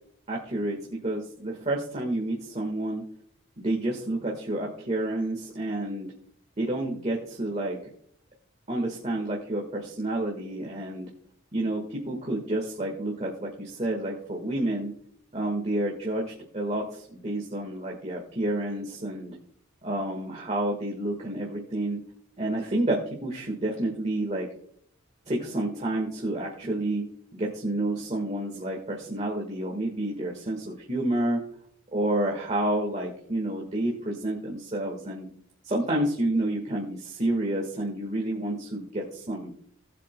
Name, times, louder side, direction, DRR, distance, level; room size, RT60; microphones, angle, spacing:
voice 1, 0.3-0.8 1.0-3.0 3.6-6.1 6.6-7.8 8.7-11.1 11.5-14.9 15.3-19.3 19.8-22.0 22.4-24.5 25.3-27.0 27.3-31.4 31.9-35.3 35.6-39.6, right 1 dB, 35° right, -1 dB, 1.6 m, -29 dB
19.0 x 7.6 x 2.2 m, 0.63 s
head